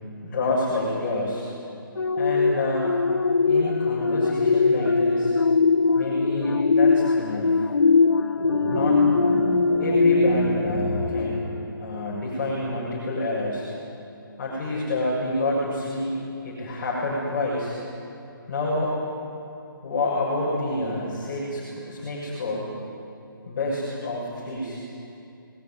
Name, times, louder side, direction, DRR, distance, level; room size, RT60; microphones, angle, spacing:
voice 1, 0.2-1.5 2.2-2.9 3.5-5.3 6.0-7.6 8.7-9.0 9.8-11.4 11.8-13.7 14.4-16.2 16.4-17.7 18.5-19.0 19.8-22.7 23.5-24.8, left 2 dB, 35° left, -5 dB, 7.2 m, -28 dB
sound 1, 2.0-11.8 12.3-12.5, left 4 dB, 65° left, 0.9 m, -21 dB
sound 2, 8.4-12.0, right 2 dB, 80° right, 2.4 m, -29 dB
27.5 x 20.5 x 9.6 m, 2.8 s
figure-of-eight pair, 140°, 12 cm